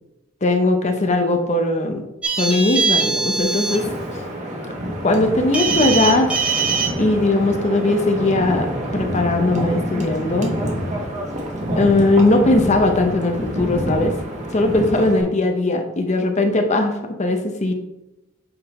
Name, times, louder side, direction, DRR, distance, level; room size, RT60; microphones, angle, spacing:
voice 1, 0.4-2.0 2.4-4.2 5.0-6.5 7.0-8.7 8.9-10.5 11.8-14.1 14.5-17.7, left 2 dB, 35° left, 5 dB, 0.7 m, -19 dB
sound 1, 2.2-3.8 5.5-6.9, right 5 dB, 5° right, 1.1 m, -21 dB
Wind, 3.4-15.2, equal, 35° right, 1.4 m, -27 dB
7.8 x 3.8 x 4.2 m, 0.95 s
head